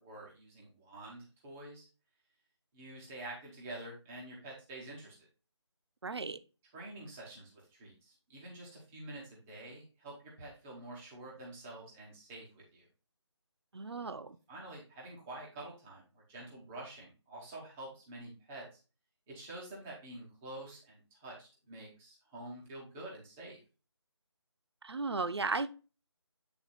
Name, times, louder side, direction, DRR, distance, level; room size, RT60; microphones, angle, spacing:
voice 1, 0.0-1.9 2.7-5.3 6.7-12.9 14.0-14.2 14.5-18.7 19.3-23.6, right 2 dB, 5° right, -4 dB, 0.5 m, -48 dB
voice 2, 6.0-6.4 13.7-14.4 24.8-25.7, right 3 dB, 60° right, 12 dB, 0.6 m, -35 dB
8.0 x 3.5 x 3.9 m, 0.33 s
figure-of-eight pair, 160°, 15 cm